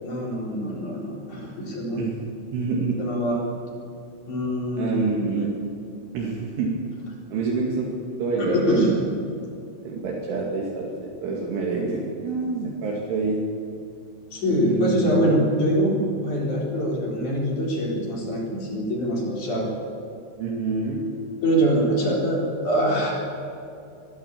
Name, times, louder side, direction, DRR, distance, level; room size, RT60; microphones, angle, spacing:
voice 1, 0.0-2.0 3.0-3.4 4.3-5.0 8.4-8.9 14.3-19.7 21.4-23.1, equal, 40° left, -2 dB, 5.1 m, -24 dB
voice 2, 2.5-3.0 4.8-5.5 6.1-6.7 7.3-8.8 9.8-13.4 14.5-15.4 20.4-21.0, right 4 dB, 75° right, -3 dB, 4.7 m, -27 dB
23.5 x 13.0 x 8.8 m, 2.6 s
omnidirectional pair, 5.7 m